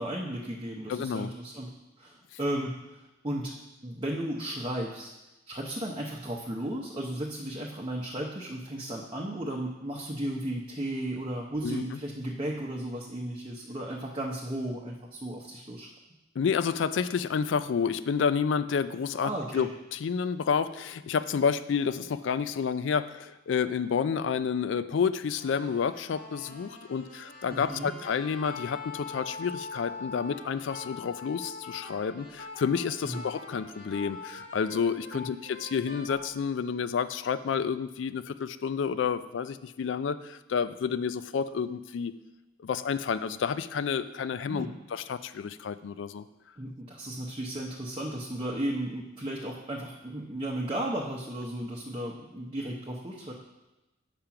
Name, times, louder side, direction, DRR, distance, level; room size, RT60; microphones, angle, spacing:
voice 1, 0.0-1.7 2.0-3.5 3.8-5.1 5.5-15.9 19.2-19.7 27.5-27.9 33.0-33.2 35.1-35.3 44.5-44.7 46.6-53.3, right 1 dB, 25° right, -2 dB, 0.7 m, -35 dB
voice 2, 0.9-1.3 11.6-11.8 16.4-42.1 42.6-46.2, left 6 dB, 70° left, 13 dB, 0.4 m, -30 dB
sound 1, 25.4-36.3, left 3 dB, 50° left, 1.5 m, -43 dB
7.4 x 5.1 x 5.8 m, 1.0 s
head